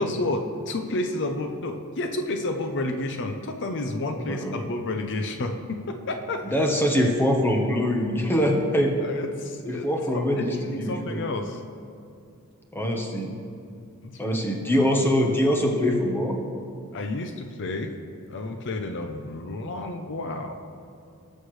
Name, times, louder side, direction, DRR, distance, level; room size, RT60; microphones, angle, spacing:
voice 1, 0.0-6.7 9.0-9.9 10.4-11.6 14.0-14.4 16.9-17.9 18.3-20.6, left 2 dB, 55° left, 5 dB, 0.7 m, -30 dB
voice 2, 4.1-4.6 6.4-8.9 9.6-11.2 12.7-13.3 14.2-16.4, equal, 10° left, 1 dB, 1.1 m, -23 dB
19.5 x 6.5 x 3.2 m, 2.4 s
head